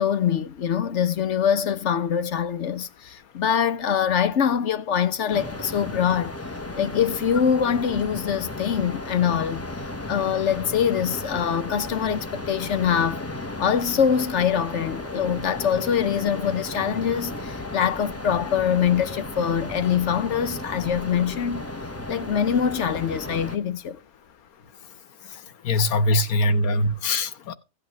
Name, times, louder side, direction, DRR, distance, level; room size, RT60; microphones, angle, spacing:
voice 1, 0.0-6.4 6.8-9.6 10.1-13.2 13.6-21.6 22.1-24.0 25.7-26.2, left 8 dB, 55° left, 1.1 m, -24 dB
sound 1, 5.3-23.6, left 2 dB, 15° left, 0.7 m, -34 dB
voice 2, 25.6-27.5, left 1 dB, 80° left, 1.5 m, -22 dB
16.5 x 8.4 x 3.0 m
omnidirectional pair, 1.5 m